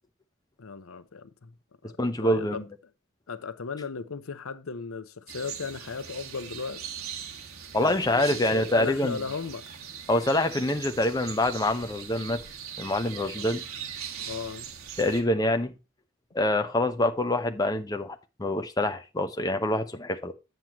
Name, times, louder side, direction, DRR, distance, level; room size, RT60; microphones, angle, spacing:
voice 1, 0.6-1.5 1.8-2.7 3.3-6.8 7.8-9.7 13.4-13.5 14.2-14.7, left 5 dB, 80° left, 0.7 m, -36 dB
voice 2, 2.0-2.6 7.7-9.2 10.1-12.4 12.8-13.6 15.0-15.7 16.3-20.3, left 1 dB, 20° left, 0.8 m, -26 dB
sound 1, 5.3-15.2, right 8 dB, 80° right, 1.7 m, -41 dB
8.8 x 7.8 x 3.0 m
head